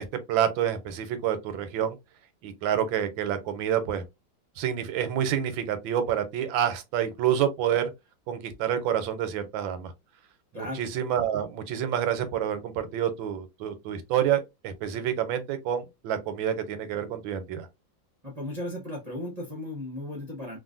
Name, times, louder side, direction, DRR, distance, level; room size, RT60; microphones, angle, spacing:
voice 1, 0.0-2.0 2.4-4.0 4.6-7.9 8.3-9.9 10.5-17.7, right 9 dB, 85° right, 1.4 m, -28 dB
voice 2, 18.2-20.6, left 1 dB, 35° right, 0.6 m, -35 dB
3.1 x 2.5 x 2.4 m
omnidirectional pair, 2.1 m